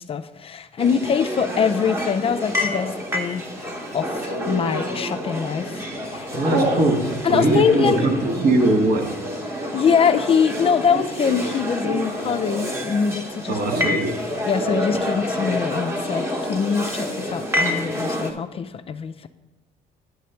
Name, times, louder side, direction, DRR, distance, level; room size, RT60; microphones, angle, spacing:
voice 1, 0.0-6.3 7.2-8.0 9.7-14.0 14.5-19.3, left 7 dB, 35° left, 10 dB, 0.3 m, -23 dB
sound 1, 0.8-18.3, left 1 dB, 15° right, 1.0 m, -28 dB
Telephone, 4.3-4.8 5.4-5.6 5.9-6.8 7.3-12.9 13.1-14.2 14.5-15.0 15.3-15.4 15.6-16.2, right 1 dB, 80° right, 2.4 m, -29 dB
voice 2, 6.3-9.1 13.5-14.1, right 2 dB, 65° right, 3 dB, 1.3 m, -21 dB
9.4 x 3.2 x 6.7 m, 1.1 s
cardioid pair, 110°, 17 cm